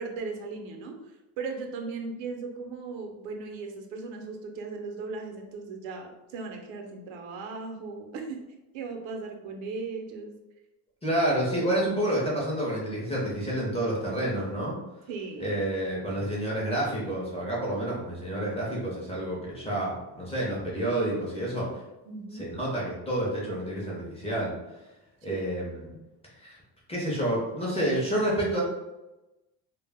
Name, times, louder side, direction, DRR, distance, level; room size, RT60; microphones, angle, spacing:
voice 1, 0.0-8.4 8.7-10.4 15.1-15.6 22.1-22.5 25.2-25.5, right 4 dB, 80° right, 3 dB, 0.6 m, -37 dB
voice 2, 11.0-14.8 15.4-21.7 22.4-24.5 25.2-25.9 26.4-26.6 26.9-28.6, right 1 dB, 15° left, -5 dB, 0.5 m, -29 dB
2.1 x 2.0 x 3.3 m, 1.0 s
cardioid pair, 155°, 45 cm